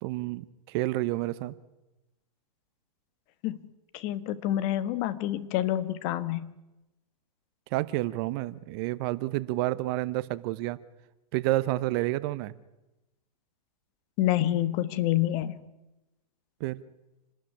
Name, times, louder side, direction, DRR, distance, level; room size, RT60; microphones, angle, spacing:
voice 1, 0.0-1.5 7.7-10.8 11.3-12.5 16.6-16.8, right 17 dB, 40° right, 17 dB, 0.9 m, -29 dB
voice 2, 3.9-6.5 14.2-15.6, left 13 dB, 35° left, 14 dB, 1.4 m, -28 dB
27.5 x 12.5 x 9.9 m, 1.0 s
hypercardioid pair, 135°, 20 cm